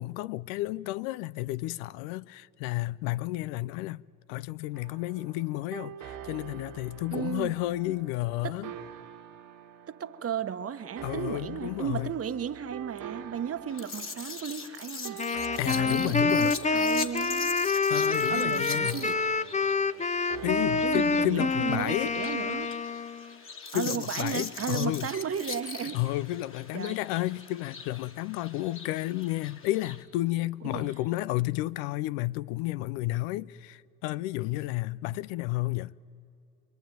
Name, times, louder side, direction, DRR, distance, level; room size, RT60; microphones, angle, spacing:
voice 1, 0.0-4.0 4.3-8.7 11.0-12.1 15.6-16.5 17.7-19.0 20.4-22.1 23.7-25.1 25.9-35.9, left 17 dB, 85° left, 0.5 m, -31 dB
sound 1, 4.7-22.7, right 8 dB, 60° right, 1.8 m, -45 dB
voice 2, 7.1-7.5 8.4-8.6 9.9-15.2 15.6-17.6 18.3-19.2 20.7-22.8 23.7-26.0 26.7-27.0 30.7-30.9, right 8 dB, 40° right, 1.2 m, -34 dB
sound 2, 13.7-30.0, left 4 dB, 35° left, 2.2 m, -42 dB
Wind instrument woodwind instrument, 15.2-23.4, left 4 dB, 20° left, 0.8 m, -27 dB
26.5 x 22.0 x 9.2 m
supercardioid pair, 70°, 36 cm